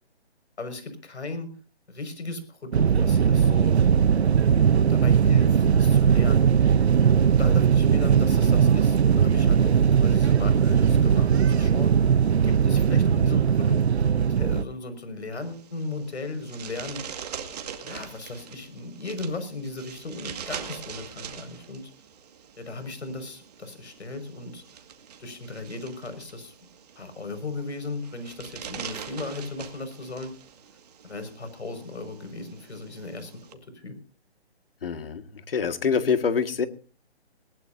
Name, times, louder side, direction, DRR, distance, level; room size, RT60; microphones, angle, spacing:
voice 1, 0.6-1.5 1.9-3.7 4.9-6.5 7.0-12.0 12.4-13.8 14.3-17.0 17.8-21.8 22.6-24.6 25.2-26.5 27.0-30.3 31.0-33.3 33.8-33.9, left 2 dB, 80° left, 10 dB, 5.9 m, -36 dB
sound 1, 2.7-14.6, right 7 dB, 70° right, 0.8 m, -19 dB
sound 2, 15.3-33.5, right 8 dB, 35° right, 2.1 m, -43 dB
voice 2, 34.8-36.7, left 6 dB, 55° left, 9 dB, 2.0 m, -25 dB
19.5 x 19.5 x 2.7 m, 0.37 s
hypercardioid pair, 160°, 33 cm